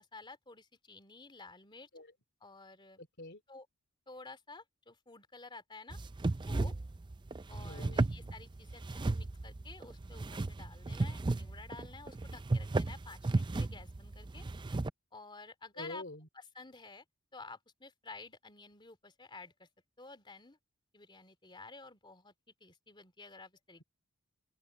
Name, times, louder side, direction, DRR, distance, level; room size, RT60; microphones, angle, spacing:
voice 1, 0.0-1.9 2.4-3.0 3.5-3.7 4.1-6.0 6.3-6.7 7.5-14.4 15.1-16.0 16.3-17.0 17.3-19.7 20.0-20.6 20.9-23.8, left 3 dB, 20° left, 2.9 m, -52 dB
voice 2, 3.0-3.4 7.6-8.1 15.8-16.3, left 1 dB, 50° left, 3.4 m, -46 dB
sound 1, 5.9-14.9, right 2 dB, 20° right, 0.4 m, -35 dB
open air
head